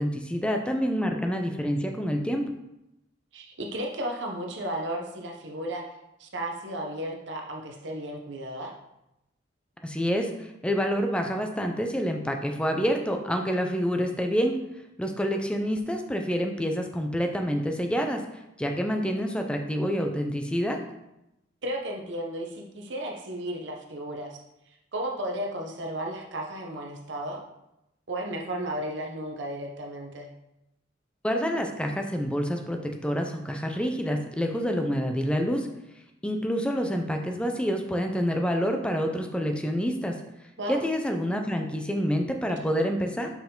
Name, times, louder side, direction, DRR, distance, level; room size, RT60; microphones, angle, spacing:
voice 1, 0.0-2.5 9.8-14.6 15.0-18.2 18.6-20.8 31.2-35.7 36.2-40.1 40.7-43.3, equal, 5° left, 4 dB, 0.5 m, -27 dB
voice 2, 3.3-5.8 6.2-8.7 21.6-24.4 24.9-27.4 28.1-30.3 40.6-40.8, right 1 dB, 65° right, 0 dB, 0.9 m, -34 dB
5.7 x 4.6 x 3.8 m, 0.88 s
head